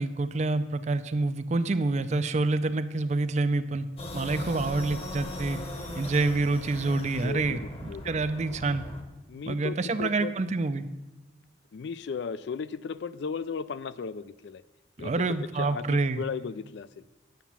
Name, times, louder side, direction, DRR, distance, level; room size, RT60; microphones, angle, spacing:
voice 1, 0.0-3.9 4.1-5.6 5.9-8.8 9.4-10.8 15.0-16.2, right 3 dB, 35° right, 12 dB, 0.4 m, -27 dB
sound 1, 4.0-9.0, left 1 dB, 30° left, 1.0 m, -39 dB
voice 2, 7.2-7.6 7.9-8.5 9.3-10.3 11.7-14.6 15.0-15.1 15.6-17.0, left 5 dB, 60° left, 16 dB, 0.3 m, -36 dB
9.2 x 7.0 x 7.2 m, 1.1 s
head